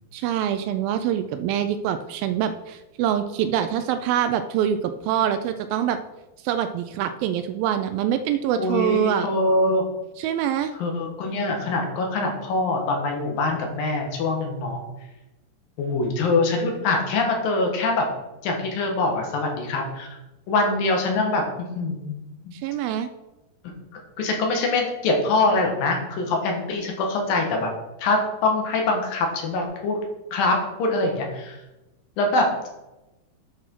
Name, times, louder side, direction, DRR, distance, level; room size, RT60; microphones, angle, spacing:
voice 1, 0.1-6.0 6.4-9.3 10.2-10.7 22.5-23.1, right 9 dB, 80° right, 9 dB, 2.2 m, -25 dB
voice 2, 8.6-9.9 10.8-14.8 15.8-18.1 18.4-20.2 20.5-22.1 22.5-22.6 23.6-27.7 28.0-30.0 30.3-31.6 32.2-32.7, left 2 dB, 70° left, 2 dB, 3.0 m, -24 dB
10.5 x 5.9 x 4.5 m, 0.99 s
omnidirectional pair, 4.4 m